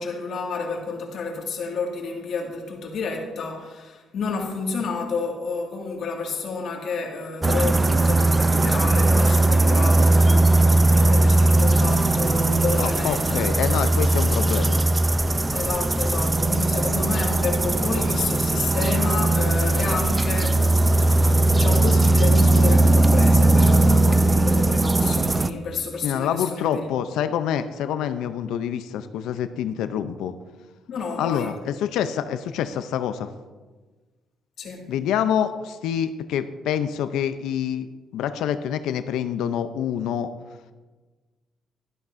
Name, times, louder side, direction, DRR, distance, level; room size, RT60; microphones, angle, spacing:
voice 1, 0.0-13.5 15.5-20.5 20.9-27.2 30.9-31.5 34.6-34.9, left 4 dB, 70° left, 1 dB, 1.9 m, -30 dB
sound 1, 7.4-25.5, right 2 dB, 20° right, 0.4 m, -19 dB
voice 2, 12.8-14.8 26.0-30.3 31.2-33.3 34.9-37.9 38.1-40.3, left 9 dB, 85° left, 11 dB, 0.5 m, -26 dB
12.0 x 12.0 x 2.6 m, 1.3 s
cardioid pair, 90°, 0 cm